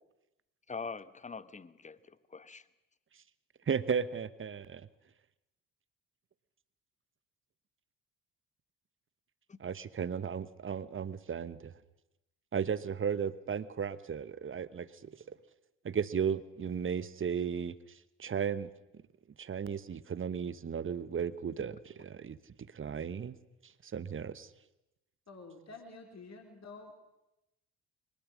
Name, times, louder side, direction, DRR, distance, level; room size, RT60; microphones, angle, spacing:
voice 1, 0.7-2.6 9.5-9.6 21.6-21.7, left 4 dB, 15° left, 17 dB, 1.0 m, -44 dB
voice 2, 3.7-4.9 9.6-11.7 12.5-15.4 15.8-17.7 18.2-18.7 19.4-22.4 22.7-23.4 23.6-24.5, right 7 dB, 25° right, 16 dB, 1.1 m, -35 dB
voice 3, 25.3-27.0, left 3 dB, 35° left, 3 dB, 3.9 m, -49 dB
23.0 x 20.5 x 6.4 m, 0.93 s
figure-of-eight pair, 45°, 46 cm